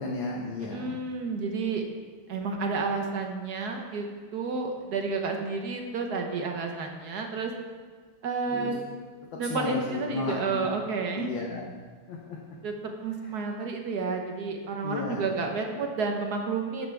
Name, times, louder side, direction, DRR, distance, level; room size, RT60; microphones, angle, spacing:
voice 1, 0.0-1.0 8.5-8.7 9.3-10.7 11.1-11.6 12.1-12.4 13.2-13.3 14.8-15.2, left 3 dB, 65° left, -1 dB, 1.7 m, -34 dB
voice 2, 0.7-1.8 2.3-4.0 4.3-7.5 8.2-8.8 9.4-11.3 12.6-12.7 13.0-16.9, right 4 dB, 55° right, 3 dB, 1.3 m, -30 dB
12.5 x 8.9 x 3.5 m, 1.5 s
omnidirectional pair, 2.4 m